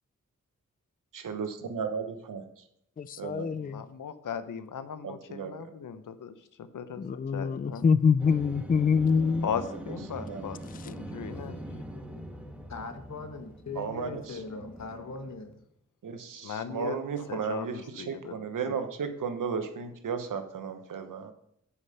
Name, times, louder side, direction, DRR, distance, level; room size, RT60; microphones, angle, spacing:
voice 1, 1.1-2.6 3.2-3.6 5.0-5.7 10.2-10.5 13.7-14.4 16.0-21.3, right 6 dB, 85° right, 8 dB, 1.0 m, -35 dB
voice 2, 3.0-3.8 7.0-9.5 10.7-10.9, left 6 dB, 30° left, 15 dB, 0.4 m, -25 dB
voice 3, 3.6-6.3 6.7-7.8 9.4-11.6 16.4-17.0 17.3-18.3, left 7 dB, 80° left, 11 dB, 0.8 m, -37 dB
sound 1, 8.2-15.3, right 1 dB, 5° right, 1.4 m, -42 dB
voice 4, 12.7-15.6, left 4 dB, 60° left, 7 dB, 1.4 m, -40 dB
10.0 x 5.0 x 5.5 m, 0.74 s
cardioid pair, 50°, 31 cm